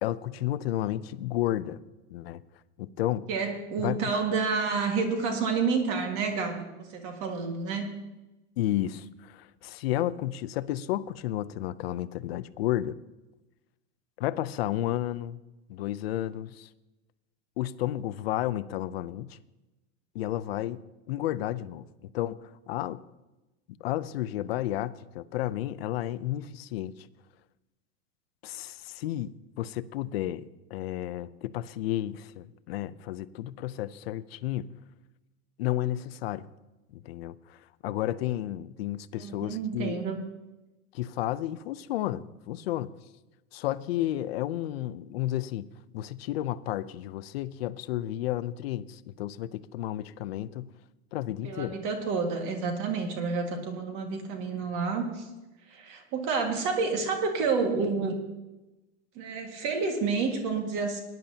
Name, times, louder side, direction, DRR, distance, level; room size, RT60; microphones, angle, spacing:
voice 1, 0.0-1.8 2.1-2.4 2.8-3.3 3.8-4.0 8.6-13.0 14.2-15.4 15.7-16.7 17.6-19.4 20.1-20.8 21.1-23.0 23.8-27.1 28.4-34.7 35.6-36.5 36.9-40.0 40.9-42.9 43.5-45.7 45.9-50.7 51.1-51.8, left 13 dB, 60° left, 15 dB, 0.6 m, -32 dB
voice 2, 3.3-7.9 39.2-40.2 51.4-55.3 55.7-58.2 59.2-61.0, right 4 dB, 35° right, 3 dB, 1.8 m, -29 dB
18.5 x 10.5 x 2.8 m, 1.0 s
supercardioid pair, 180°, 34 cm